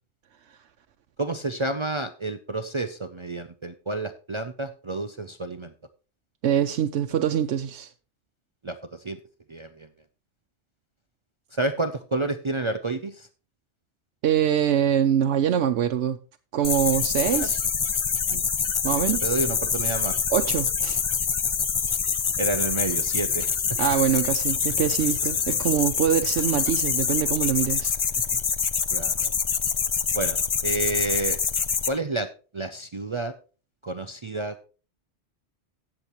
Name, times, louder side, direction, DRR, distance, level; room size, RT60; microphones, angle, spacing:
voice 1, 1.2-5.7 8.6-9.2 9.5-9.9 11.5-13.3 17.3-17.5 19.0-20.2 22.4-23.5 28.3-28.4 28.9-29.3 30.1-31.4 31.9-33.3 33.8-34.6, right 2 dB, 40° right, 0.5 m, -30 dB
voice 2, 6.4-7.9 14.2-16.2 16.5-17.6 18.3-18.4 18.8-19.2 20.3-21.0 23.8-28.0, right 9 dB, 80° right, 0.9 m, -24 dB
sound 1, 16.6-31.9, left 6 dB, 45° left, 0.4 m, -25 dB
16.5 x 7.1 x 3.0 m
omnidirectional pair, 1.2 m